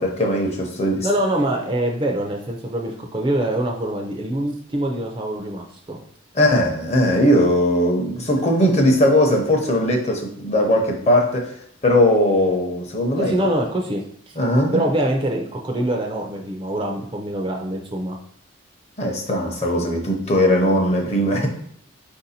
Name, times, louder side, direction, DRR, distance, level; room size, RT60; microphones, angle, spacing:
voice 1, 0.0-1.1 6.3-11.5 11.8-13.3 14.4-14.8 19.0-21.5, left 1 dB, 35° left, 2 dB, 0.7 m, -19 dB
voice 2, 1.0-6.0 13.2-14.0 14.7-18.2, right 1 dB, 25° right, 1 dB, 0.5 m, -24 dB
4.4 x 2.6 x 4.1 m, 0.63 s
head